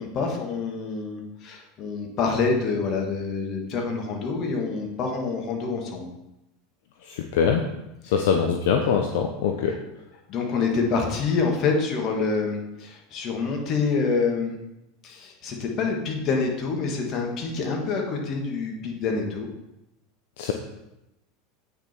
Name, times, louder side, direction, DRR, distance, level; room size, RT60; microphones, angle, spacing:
voice 1, 0.0-6.1 8.1-8.3 9.7-9.8 10.3-14.6 15.0-19.5, left 4 dB, 45° left, 2 dB, 2.0 m, -27 dB
voice 2, 7.3-7.6 8.1-9.7 20.4-20.5, left 7 dB, 70° left, 3 dB, 0.7 m, -22 dB
8.4 x 6.5 x 4.5 m, 0.92 s
hypercardioid pair, 85°, 0 cm